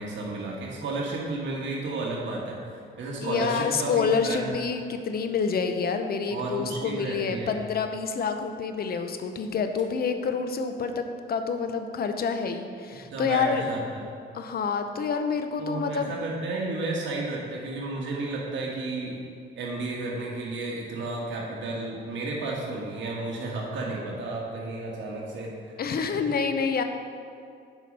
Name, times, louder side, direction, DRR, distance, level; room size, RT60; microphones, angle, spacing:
voice 1, 0.0-2.5 3.0-4.6 6.3-7.5 13.1-13.8 15.6-19.2 19.5-25.7, right 2 dB, 70° right, -4 dB, 1.5 m, -32 dB
voice 2, 3.2-13.6 14.3-16.1 25.8-26.8, left 5 dB, 50° left, 7 dB, 0.7 m, -28 dB
8.0 x 5.1 x 5.4 m, 2.4 s
cardioid pair, 90°, 20 cm